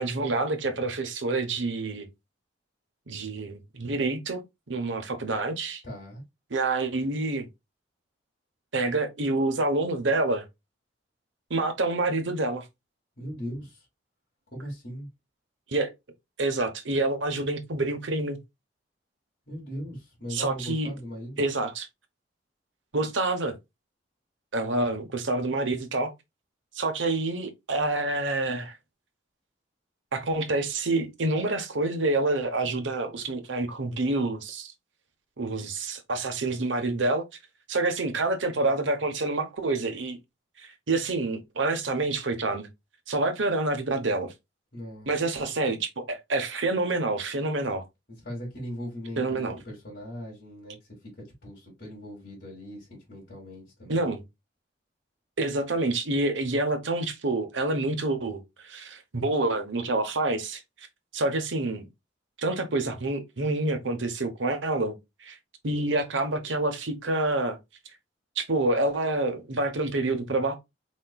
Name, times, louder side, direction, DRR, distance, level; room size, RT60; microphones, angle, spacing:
voice 1, 0.0-2.1 3.1-4.4 4.7-5.8 6.5-7.5 8.7-10.4 11.5-12.6 15.7-15.9 16.4-18.4 20.3-20.9 21.4-21.9 22.9-23.5 24.5-26.1 26.7-28.8 30.1-34.7 35.4-37.2 37.7-40.2 40.6-42.7 43.1-44.3 45.1-47.8 49.2-49.6 53.9-54.2 55.4-60.6 61.1-61.9 62.4-65.4 65.6-67.6 68.4-70.6, right 2 dB, 85° right, 1.0 m, -27 dB
voice 2, 5.8-6.2 13.2-13.9 14.5-15.1 19.5-21.4 44.7-45.1 48.2-50.8 51.0-54.1, equal, 55° left, 2.6 m, -39 dB
4.5 x 4.2 x 2.3 m
head